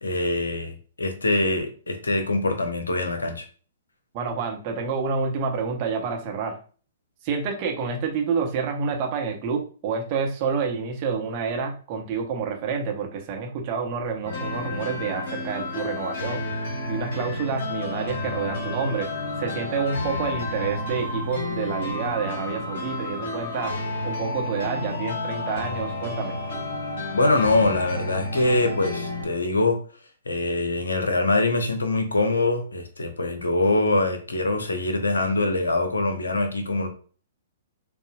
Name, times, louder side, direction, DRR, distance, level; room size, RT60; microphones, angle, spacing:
voice 1, 0.0-3.4 27.1-29.8 30.3-36.9, left 2 dB, 70° left, 0.8 m, -23 dB
voice 2, 4.1-6.6 7.2-16.5 16.9-19.1 19.4-23.7 24.0-26.4, right 5 dB, 35° right, 0.9 m, -28 dB
sound 1, 14.3-29.2, left 2 dB, 50° left, 1.3 m, -31 dB
6.7 x 2.4 x 2.4 m
figure-of-eight pair, 115°, 0 cm